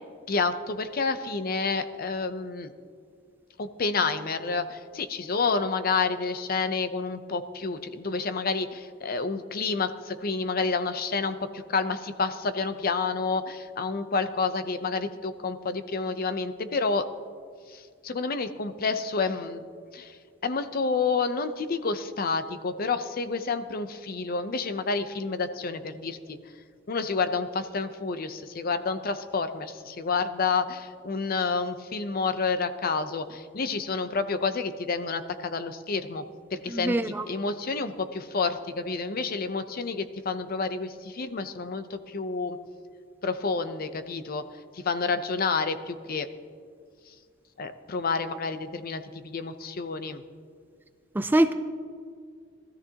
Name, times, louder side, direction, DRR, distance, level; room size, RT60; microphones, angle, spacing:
voice 1, 0.3-2.7 3.6-17.1 17.7-19.6 19.9-26.2 26.9-36.2 36.5-42.6 43.2-44.4 44.7-46.3 47.6-50.2, left 4 dB, 50° left, 11 dB, 0.6 m, -29 dB
voice 2, 36.7-37.2 51.2-51.5, right 1 dB, 10° right, 10 dB, 0.4 m, -23 dB
20.0 x 13.5 x 2.9 m, 2.2 s
head